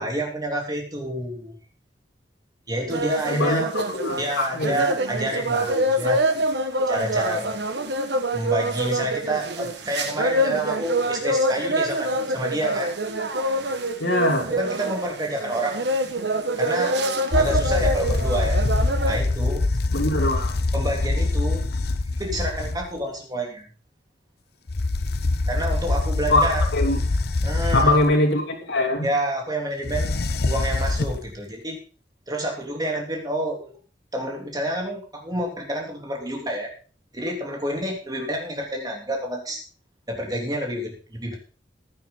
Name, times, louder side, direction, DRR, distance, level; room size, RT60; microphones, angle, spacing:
voice 1, 0.0-1.5 2.7-3.7 4.2-6.2 6.9-7.6 8.3-12.9 14.5-15.9 16.6-17.0 17.3-18.6 19.0-19.7 20.7-21.6 22.1-23.6 25.5-26.6 27.4-28.0 29.0-30.2 30.5-31.8 32.3-33.7 34.1-36.7 37.1-39.6 40.1-41.4, right 1 dB, 20° right, 0 dB, 3.4 m, -28 dB
sound 1, 2.9-19.2, right 1 dB, 65° right, 1.6 m, -25 dB
voice 2, 3.3-4.8 14.0-14.5 19.9-20.5 26.3-27.0 27.7-29.1, left 2 dB, 85° left, -2 dB, 3.5 m, -22 dB
sound 2, 17.3-22.9 24.7-28.1 29.8-31.3, left 2 dB, 55° left, 0.8 m, -24 dB
15.5 x 9.9 x 4.0 m, 0.38 s
head